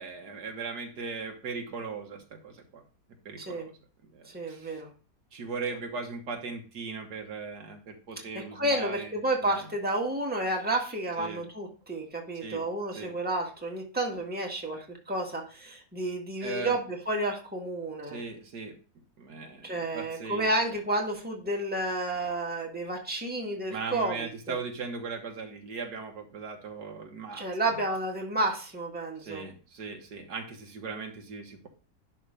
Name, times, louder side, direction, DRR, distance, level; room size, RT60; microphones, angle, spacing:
voice 1, 0.0-2.8 3.3-3.7 4.1-4.8 5.3-9.1 9.4-9.7 11.2-11.4 12.4-12.6 13.0-13.1 16.4-16.8 18.1-18.7 19.2-20.5 23.7-27.4 29.2-31.7, right 4 dB, 85° right, 3 dB, 1.9 m, -38 dB
voice 2, 3.4-3.7 4.3-4.9 8.5-18.2 19.6-24.6 27.3-29.4, right 1 dB, 5° right, -1 dB, 1.6 m, -31 dB
11.0 x 3.6 x 5.0 m, 0.37 s
omnidirectional pair, 1.7 m